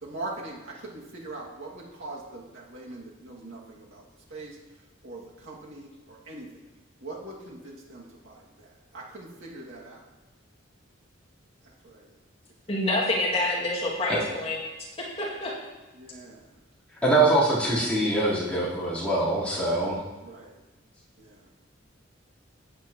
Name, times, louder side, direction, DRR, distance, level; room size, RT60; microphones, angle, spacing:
voice 1, 0.0-4.0 4.3-4.6 5.0-6.5 7.0-10.0 11.6-12.1 13.0-13.1 15.9-16.5 19.6-19.8 20.2-20.6 21.2-21.5, right 2 dB, 80° right, -4 dB, 2.1 m, -42 dB
voice 2, 12.7-14.6 15.2-15.5, left 1 dB, 30° left, -5 dB, 2.2 m, -27 dB
voice 3, 17.0-20.0, right 2 dB, 5° left, -10 dB, 3.6 m, -23 dB
14.5 x 8.9 x 3.0 m, 1.1 s
head